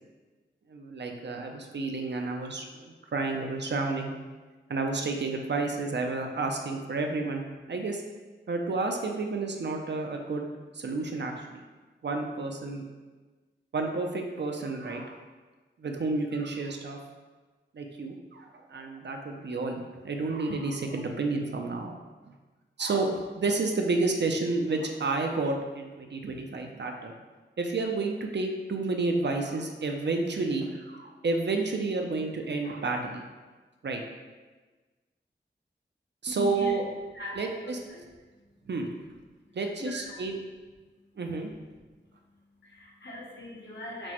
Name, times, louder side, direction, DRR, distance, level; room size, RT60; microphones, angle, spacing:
voice 1, 0.7-4.1 4.7-8.0 8.5-10.5 10.7-11.6 12.0-12.8 13.7-15.2 15.8-17.0 17.7-22.0 22.8-27.1 27.6-33.2 33.8-34.0 36.2-36.8 37.3-37.8 38.7-38.9 39.5-40.4 41.2-41.5, right 3 dB, 65° right, 3 dB, 0.5 m, -30 dB
voice 2, 36.3-36.8 37.1-38.0 39.8-40.3 42.6-44.1, left 1 dB, 65° left, -4 dB, 0.8 m, -40 dB
5.9 x 2.1 x 2.9 m, 1.3 s
wide cardioid pair, 70°, 20 cm